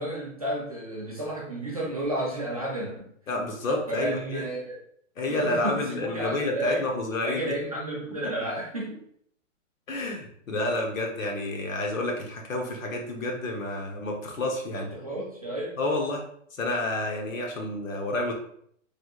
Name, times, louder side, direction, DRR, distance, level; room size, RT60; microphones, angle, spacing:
voice 1, 0.0-3.1 3.9-4.8 5.3-6.8 7.2-9.0 14.7-15.8, right 1 dB, 30° right, -5 dB, 0.4 m, -32 dB
voice 2, 3.3-4.5 5.2-7.6 8.2-8.3 9.9-14.9 15.8-16.2 16.5-18.3, left 2 dB, 90° left, 0 dB, 1.1 m, -29 dB
3.3 x 2.5 x 3.0 m, 0.66 s
hypercardioid pair, 175°, 39 cm